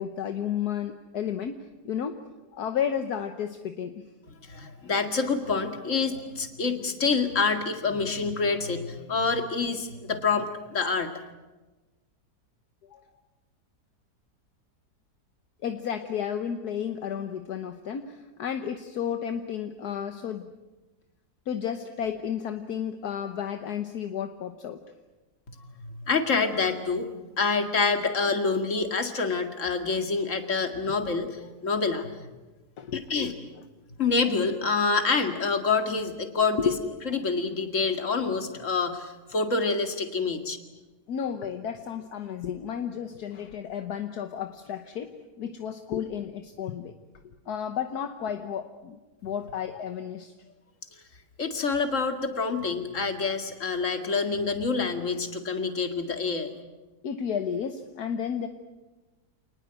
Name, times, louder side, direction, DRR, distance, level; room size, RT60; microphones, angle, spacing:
voice 1, 0.0-2.2 2.5-4.0 12.9-13.0 15.6-20.5 21.5-24.8 30.9-31.0 32.8-33.1 36.6-36.9 41.1-46.9 47.5-50.3 57.0-58.5, left 8 dB, 70° left, 7 dB, 1.6 m, -32 dB
voice 2, 4.5-11.1 25.6-27.1 27.4-32.1 32.9-33.3 34.0-36.7 37.1-40.6 51.4-56.5, left 4 dB, 50° left, 6 dB, 2.5 m, -27 dB
27.5 x 19.5 x 9.0 m, 1.2 s
omnidirectional pair, 1.8 m